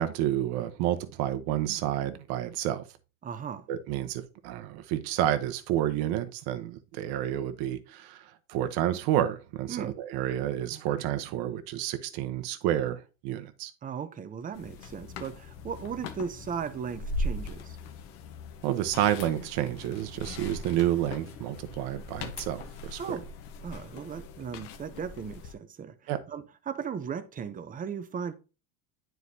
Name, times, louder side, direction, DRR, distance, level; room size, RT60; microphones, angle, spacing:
voice 1, 0.0-2.8 3.7-13.7 18.6-23.2 26.1-26.2, right 12 dB, 60° right, 0.9 m, -30 dB
voice 2, 3.2-3.6 9.7-9.9 13.8-17.8 23.0-23.3 23.6-28.3, right 7 dB, 20° right, 0.6 m, -37 dB
sound 1, 14.5-25.5, left 2 dB, 70° left, 1.1 m, -40 dB
9.6 x 4.6 x 2.7 m
supercardioid pair, 130°, 43 cm